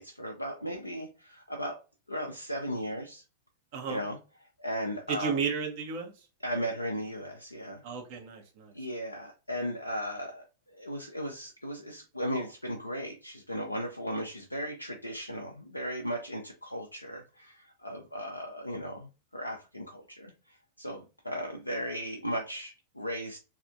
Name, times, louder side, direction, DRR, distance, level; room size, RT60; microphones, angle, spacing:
voice 1, 0.0-1.8 2.1-3.2 3.9-5.4 6.4-7.8 8.7-10.4 10.7-23.4, equal, 85° left, 1 dB, 0.5 m, -36 dB
voice 2, 5.1-6.1 7.8-8.7, right 5 dB, 50° right, 3 dB, 0.9 m, -33 dB
3.3 x 2.7 x 2.5 m, 0.30 s
figure-of-eight pair, 90°, 0 cm